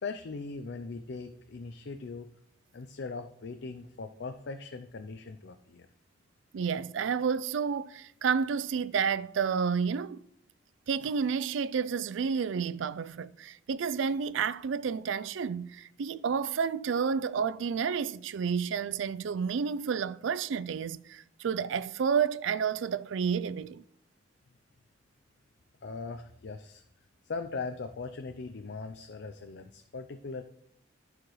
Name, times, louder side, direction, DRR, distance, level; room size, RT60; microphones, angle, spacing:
voice 1, 0.0-2.3 2.7-5.9 25.8-26.8 27.2-30.4, left 4 dB, 60° left, 0.5 m, -40 dB
voice 2, 6.5-10.2 10.9-23.8, right 6 dB, 75° right, 0.4 m, -30 dB
14.5 x 4.9 x 3.1 m
head